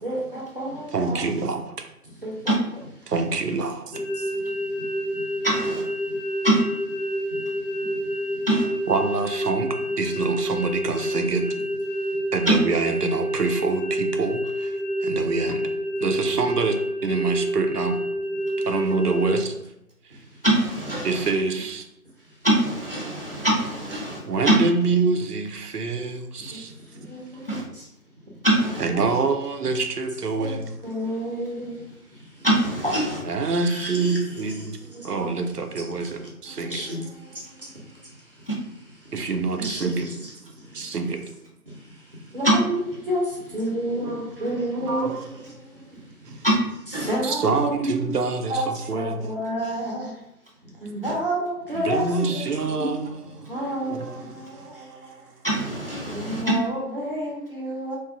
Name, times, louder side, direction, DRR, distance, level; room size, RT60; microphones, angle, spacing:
voice 1, 0.0-1.2 2.2-2.5 3.0-3.1 4.2-5.5 6.0-6.4 7.1-8.5 12.0-12.2 20.1-20.4 22.2-22.4 23.0-23.5 24.0-24.3 26.4-27.9 28.6-29.2 30.4-32.5 33.4-35.2 35.7-36.2 36.5-38.5 39.0-39.1 39.5-41.0 41.7-46.5 46.9-48.0 48.5-50.2 50.6-52.4 52.7-55.3 56.1-58.0, right 1 dB, 40° right, -3 dB, 0.7 m, -32 dB
voice 2, 0.9-1.9 3.1-4.0 8.9-11.5 12.3-15.7 16.0-16.8 17.0-18.0 18.6-19.6 20.0-20.2 21.0-21.8 24.3-26.7 27.3-27.4 28.8-30.7 33.2-34.8 35.0-36.8 39.1-40.2 40.7-41.2 44.1-44.2 44.7-45.3 46.2-46.5 47.2-49.2 51.1-51.2 51.7-53.0 53.3-55.3, right 4 dB, 85° right, 6 dB, 0.6 m, -26 dB
sound 1, 3.9-19.4, equal, 75° left, 0.7 m, -28 dB
voice 3, 5.4-5.8 6.4-6.6 8.5-8.7 12.5-12.6 20.4-21.2 22.4-24.2 24.5-24.6 27.5-27.6 28.4-28.8 32.4-33.2 38.5-38.6 42.4-42.6 46.4-46.6 46.9-47.1 51.0-51.1 55.4-56.5, right 1 dB, 40° left, -2 dB, 0.4 m, -22 dB
2.9 x 2.3 x 2.4 m, 0.84 s
figure-of-eight pair, 155°, 46 cm